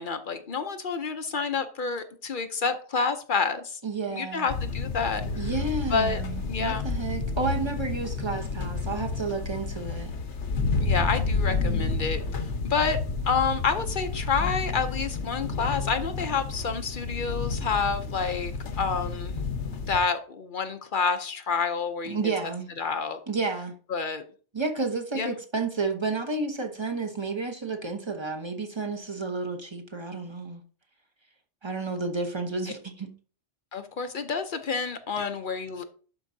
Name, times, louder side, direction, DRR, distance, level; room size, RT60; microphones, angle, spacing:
voice 1, 0.0-3.8 4.1-5.5 5.9-6.9 10.8-13.0 13.3-19.3 19.9-22.5 22.8-23.2 23.9-24.2 25.2-25.4 32.6-32.7 33.7-35.8, left 5 dB, 50° left, 0.7 m, -29 dB
voice 2, 3.8-4.5 5.4-10.1 22.1-22.7 23.3-23.7 24.5-30.6 31.6-33.1, right 3 dB, 25° right, 0.9 m, -31 dB
sound 1, 4.5-20.0, left 4 dB, 70° left, 1.2 m, -30 dB
11.5 x 4.6 x 2.7 m
omnidirectional pair, 1.2 m